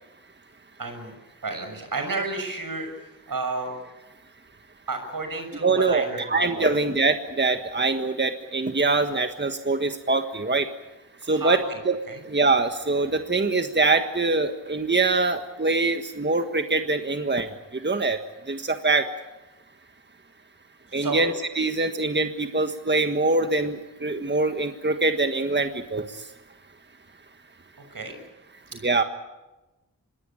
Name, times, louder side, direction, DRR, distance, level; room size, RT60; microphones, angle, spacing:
voice 1, 0.8-1.1 1.4-3.7 4.9-6.2 6.5-6.7 11.2-11.8 12.1-12.2 20.9-21.3 27.9-28.2, right 3 dB, 80° right, 6 dB, 6.5 m, -31 dB
voice 2, 5.6-10.7 11.3-12.0 12.3-17.5 17.8-18.2 18.5-19.1 20.9-26.0 28.8-29.0, right 3 dB, 30° right, 7 dB, 1.5 m, -23 dB
26.0 x 20.5 x 8.8 m, 1.1 s
wide cardioid pair, 55°, 33 cm